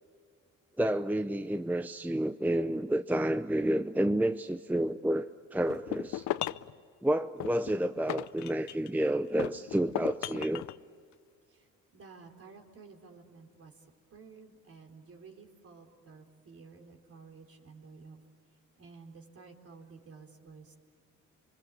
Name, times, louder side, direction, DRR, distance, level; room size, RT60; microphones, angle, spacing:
voice 1, 0.8-6.2 7.0-10.6, right 1 dB, 5° right, 10 dB, 0.7 m, -30 dB
sound 1, 5.7-6.7 7.4-9.0 9.4-10.8, left 14 dB, 65° left, 0.7 m, -36 dB
voice 2, 11.9-13.7 14.1-18.2 18.8-20.8, right 4 dB, 50° right, 2 dB, 4.2 m, -52 dB
28.0 x 23.5 x 8.7 m, 2.1 s
cardioid pair, 85°, 31 cm